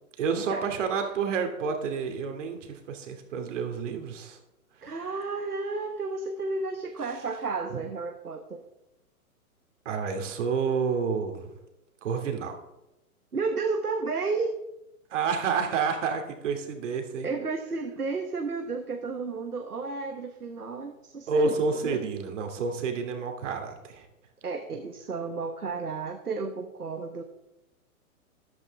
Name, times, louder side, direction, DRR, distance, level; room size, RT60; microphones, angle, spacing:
voice 1, 0.2-4.4 4.8-4.9 7.7-7.8 9.8-11.5 12.0-12.6 15.1-17.3 21.3-24.1, right 5 dB, 55° right, 5 dB, 2.5 m, -29 dB
voice 2, 4.8-8.6 13.3-14.6 17.2-22.0 24.4-27.2, right 4 dB, 90° right, 5 dB, 1.3 m, -32 dB
13.5 x 12.0 x 3.5 m, 0.92 s
figure-of-eight pair, 120°, 44 cm